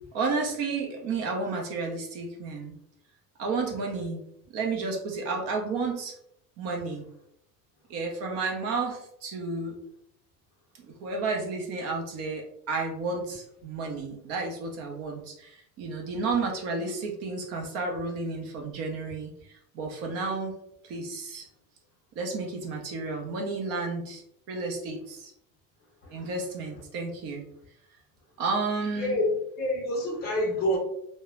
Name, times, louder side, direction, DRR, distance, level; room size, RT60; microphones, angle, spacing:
voice 1, 0.1-2.8 3.4-4.2 4.5-6.2 6.6-7.1 7.9-9.8 10.8-20.6 20.8-21.5 22.1-24.2 24.5-25.3 26.1-27.4 28.4-29.2, right 3 dB, 35° right, 1 dB, 0.5 m, -32 dB
voice 2, 29.0-30.8, left 1 dB, 25° left, -1 dB, 0.6 m, -28 dB
3.1 x 2.1 x 2.3 m, 0.73 s
cardioid pair, 175°, 40 cm